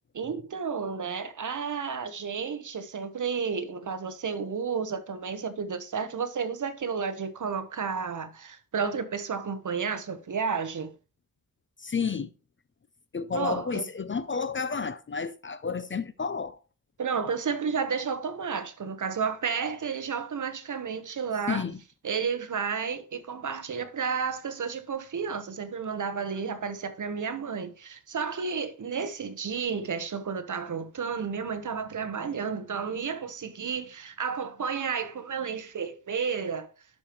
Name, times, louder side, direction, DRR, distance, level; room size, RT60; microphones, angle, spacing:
voice 1, 0.1-10.9 13.3-13.8 17.0-21.6 22.0-36.7, right 6 dB, 55° right, 1.0 m, -32 dB
voice 2, 11.8-12.3 13.1-16.6 21.5-21.8, left 5 dB, 35° left, 0.4 m, -31 dB
12.0 x 5.1 x 3.0 m
wide cardioid pair, 175°, 36 cm